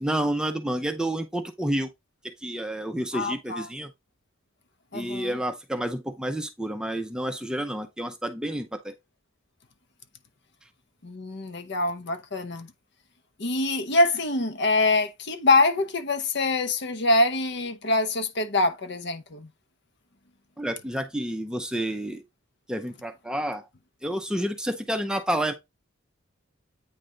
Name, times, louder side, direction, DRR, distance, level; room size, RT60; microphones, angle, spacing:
voice 1, 0.0-1.9 2.4-3.9 4.9-8.9 20.6-22.2 22.7-23.6 24.0-25.5, right 1 dB, 5° right, 0.5 m, -29 dB
voice 2, 3.1-3.7 4.9-5.3 11.0-12.7 13.4-19.5, left 2 dB, 55° left, 0.9 m, -24 dB
8.6 x 3.3 x 3.8 m
head